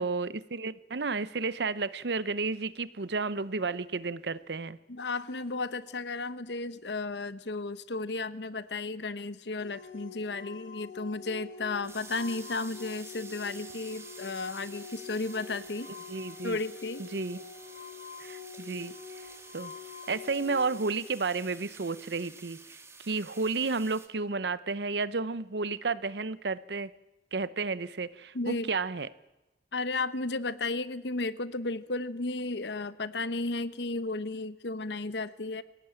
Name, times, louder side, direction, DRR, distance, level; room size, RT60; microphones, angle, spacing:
voice 1, 0.0-4.8 16.1-16.6 17.0-17.4 18.2-18.9 19.5-19.7 20.1-22.6 23.1-26.9 27.3-29.1, right 4 dB, 70° right, 17 dB, 0.8 m, -32 dB
voice 2, 4.9-15.9 16.4-17.0 28.3-28.7 29.7-35.6, left 3 dB, 75° left, 15 dB, 1.0 m, -34 dB
sound 1, 9.6-20.8, left 6 dB, 45° left, 2.4 m, -46 dB
sound 2, 11.8-24.1, right 4 dB, 15° right, 1.8 m, -50 dB
25.5 x 17.5 x 8.9 m, 1.0 s
head